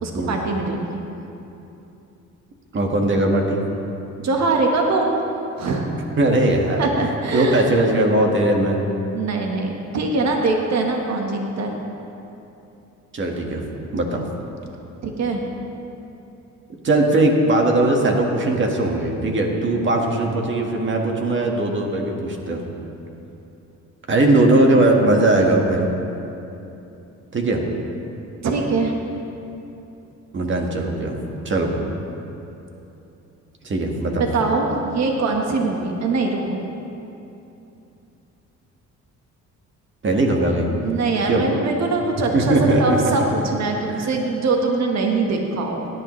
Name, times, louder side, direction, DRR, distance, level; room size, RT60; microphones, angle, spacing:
voice 1, 0.0-1.0 4.2-5.1 5.6-5.9 6.8-7.7 9.1-11.7 15.0-15.4 28.4-28.9 34.1-36.6 40.8-45.8, right 3 dB, 60° right, 1 dB, 1.4 m, -22 dB
voice 2, 2.7-3.6 6.2-6.9 7.3-8.8 13.1-13.6 13.9-14.3 16.8-22.6 24.1-25.9 27.3-27.6 30.3-31.2 31.4-31.8 33.6-34.3 40.0-40.7 41.3-41.4 42.3-43.0 43.9-44.1, right 2 dB, 40° right, 1 dB, 1.7 m, -19 dB
17.5 x 11.0 x 3.2 m, 2.9 s
cardioid pair, 90°, 30 cm